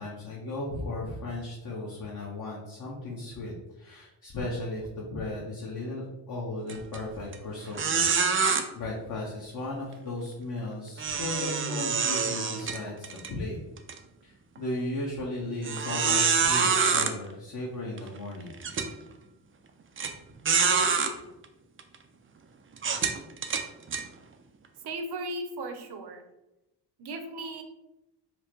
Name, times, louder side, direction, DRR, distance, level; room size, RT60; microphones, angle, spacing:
voice 1, 0.0-8.4 8.7-13.6 14.2-18.5, left 2 dB, 45° left, -4 dB, 1.1 m, -36 dB
sound 1, 6.7-7.0 7.3-7.4 7.8-8.6 11.0-13.3 13.8-13.9 14.6-14.7 15.6-17.1 18.0-18.1 18.6-18.9 20.0-20.1 20.5-21.1 21.8-22.0 22.8-24.0, right 5 dB, 30° right, 0.4 m, -26 dB
voice 2, 24.9-26.2 27.0-27.6, right 2 dB, 60° right, 6 dB, 0.8 m, -36 dB
4.6 x 2.1 x 4.5 m, 0.92 s
cardioid pair, 105°, 44 cm